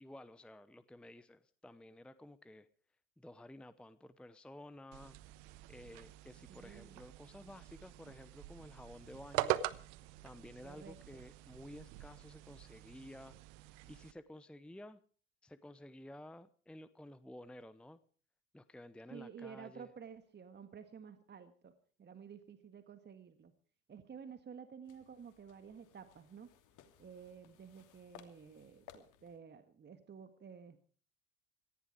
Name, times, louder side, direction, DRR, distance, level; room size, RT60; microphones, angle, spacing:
voice 1, 0.0-2.7 3.2-5.2 5.7-9.6 10.2-13.4 13.9-15.0 15.4-18.0 18.5-19.9, left 1 dB, 5° left, 15 dB, 0.8 m, -53 dB
sound 1, 4.9-14.1, right 15 dB, 65° right, 1.1 m, -43 dB
voice 2, 6.5-7.0 10.6-11.2 19.1-21.7 22.0-23.5 23.9-26.5 27.0-30.8, right 7 dB, 25° right, 10 dB, 1.7 m, -52 dB
sound 2, 24.8-29.4, left 9 dB, 50° left, 2.9 m, -61 dB
18.0 x 14.5 x 5.0 m, 0.42 s
hypercardioid pair, 70°, 39 cm